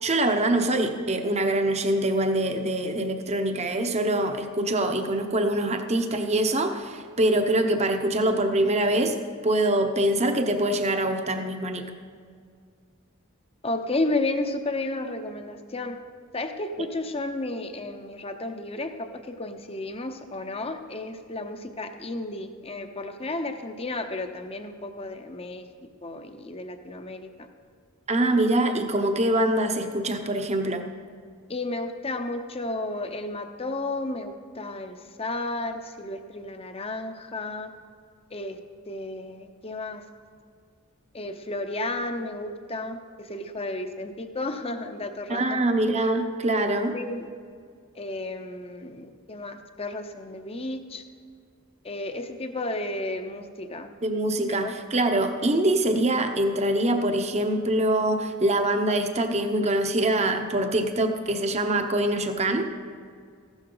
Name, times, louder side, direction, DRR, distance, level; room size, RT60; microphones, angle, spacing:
voice 1, 0.0-11.9 28.1-30.9 45.3-47.0 54.0-62.7, right 1 dB, 30° right, 6 dB, 0.9 m, -24 dB
voice 2, 13.6-16.0 16.3-25.6 26.0-27.5 31.5-37.7 38.3-38.6 38.9-40.1 41.1-45.7 46.9-47.3 47.9-51.0 51.8-53.9 54.5-54.7, left 2 dB, 25° left, 7 dB, 0.8 m, -32 dB
15.0 x 12.5 x 4.0 m, 2.1 s
head